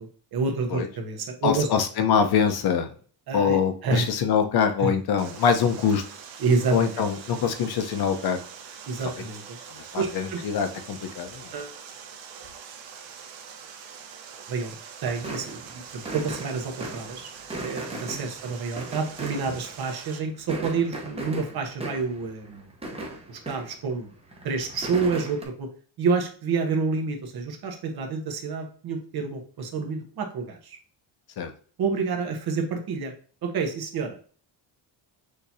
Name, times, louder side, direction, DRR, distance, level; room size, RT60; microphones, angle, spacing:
voice 1, 0.0-1.7 3.3-4.1 4.8-4.9 6.4-6.8 8.9-9.6 9.9-10.4 11.5-11.7 14.5-14.7 15.0-17.3 17.6-22.7 23.3-24.1 24.4-25.7 26.0-30.8 31.8-33.1 33.4-34.2, right 4 dB, 50° right, 3 dB, 1.2 m, -28 dB
voice 2, 1.4-2.9 3.3-6.0 6.7-8.4 9.7-11.5 18.1-18.2 19.4-19.6 31.4-31.5, left 7 dB, 55° left, 7 dB, 0.8 m, -24 dB
Water, 5.2-20.2, right 7 dB, 75° right, 1.0 m, -44 dB
sound 1, 15.0-20.0 20.3-23.9 24.2-25.5, right 1 dB, 15° right, 0.9 m, -38 dB
6.5 x 3.0 x 2.7 m, 0.43 s
cardioid pair, 145°, 46 cm